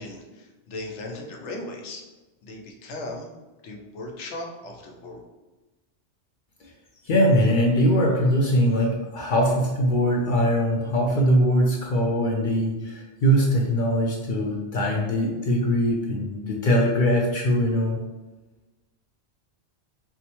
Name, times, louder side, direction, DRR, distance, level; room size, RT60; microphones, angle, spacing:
voice 1, 0.0-2.0 2.4-3.3 3.6-5.2, left 2 dB, 85° left, 1 dB, 1.0 m, -37 dB
voice 2, 7.0-18.0, equal, 60° left, -1 dB, 0.6 m, -22 dB
4.5 x 2.1 x 2.9 m, 1.1 s
omnidirectional pair, 1.2 m